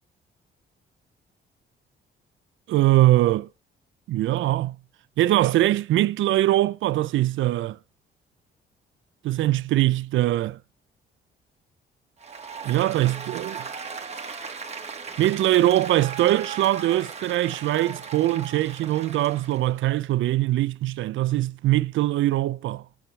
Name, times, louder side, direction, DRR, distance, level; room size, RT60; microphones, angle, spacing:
voice 1, 2.7-3.5 4.1-4.8 5.2-7.8 9.2-10.6 12.6-13.7 15.2-22.8, right 15 dB, 80° right, 0.6 m, -22 dB
Applause, 12.2-19.7, right 5 dB, 35° right, 1.9 m, -37 dB
19.5 x 7.5 x 3.3 m
cardioid pair, 90°, 20 cm